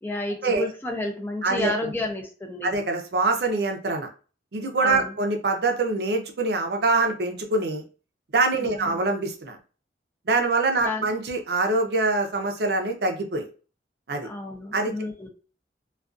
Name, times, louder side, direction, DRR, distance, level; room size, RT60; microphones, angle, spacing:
voice 1, 0.0-2.7 4.8-5.1 8.6-9.0 10.8-11.1 14.2-15.3, left 2 dB, 10° left, 1 dB, 0.4 m, -31 dB
voice 2, 2.6-4.1 4.5-7.8 8.3-9.6 10.3-13.5 14.1-14.3 14.7-14.9, right 3 dB, 65° right, 4 dB, 0.5 m, -24 dB
2.4 x 2.3 x 2.4 m, 0.36 s
head